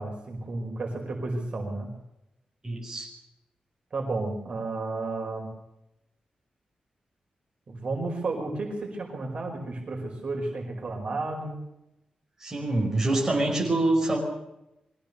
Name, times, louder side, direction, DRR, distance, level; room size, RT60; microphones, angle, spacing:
voice 1, 0.0-1.9 3.9-5.5 7.7-11.6, right 2 dB, 50° right, 1 dB, 5.1 m, -32 dB
voice 2, 2.6-3.1 12.4-14.2, right 2 dB, 20° right, -1 dB, 5.4 m, -25 dB
23.0 x 16.5 x 7.0 m, 0.89 s
wide cardioid pair, 150°, 3 cm